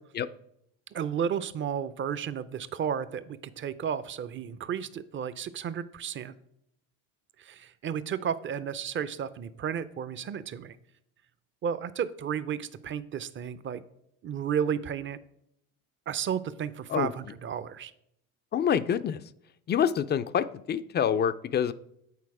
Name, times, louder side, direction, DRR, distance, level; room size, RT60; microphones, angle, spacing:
voice 1, 0.9-6.4 7.4-10.8 11.6-13.8 14.2-15.2 16.1-17.9, right 8 dB, 30° right, 15 dB, 0.5 m, -33 dB
voice 2, 18.5-19.2 19.7-21.7, left 8 dB, 25° left, 14 dB, 0.4 m, -26 dB
8.5 x 4.1 x 4.7 m, 0.76 s
hypercardioid pair, 70°, 40 cm